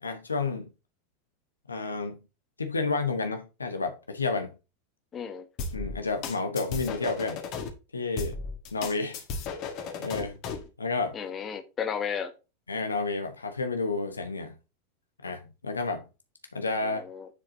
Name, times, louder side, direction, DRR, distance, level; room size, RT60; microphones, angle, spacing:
voice 1, 0.0-0.7 1.7-2.2 2.6-4.5 5.7-7.4 7.9-8.4 8.7-9.2 10.0-10.4 10.8-11.2 12.7-14.5 15.2-16.1 16.5-17.0, left 3 dB, 80° left, 1.0 m, -30 dB
voice 2, 5.1-5.5 11.1-12.3 16.8-17.3, left 7 dB, 25° left, 1.4 m, -34 dB
sound 1, 5.6-7.7 8.2-10.7, left 4 dB, 45° left, 1.7 m, -35 dB
9.6 x 4.9 x 2.8 m
figure-of-eight pair, 85°, 0 cm